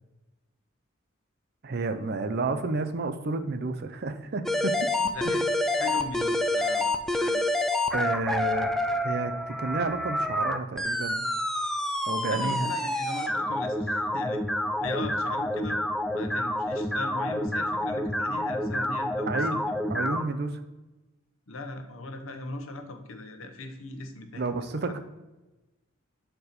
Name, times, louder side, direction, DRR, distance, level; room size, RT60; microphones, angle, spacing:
voice 1, 1.6-4.8 5.2-5.3 7.9-8.7 9.0-11.3 12.1-12.7 19.3-19.6 19.9-20.6 24.3-25.0, right 3 dB, 50° right, 9 dB, 0.5 m, -30 dB
sound 1, 4.5-20.2, left 1 dB, ahead, 0.3 m, -28 dB
voice 2, 5.7-7.4 12.3-14.4 14.8-15.8 16.1-19.7 21.5-25.0, left 2 dB, 85° left, 6 dB, 0.9 m, -38 dB
6.6 x 4.5 x 4.2 m, 1.1 s
head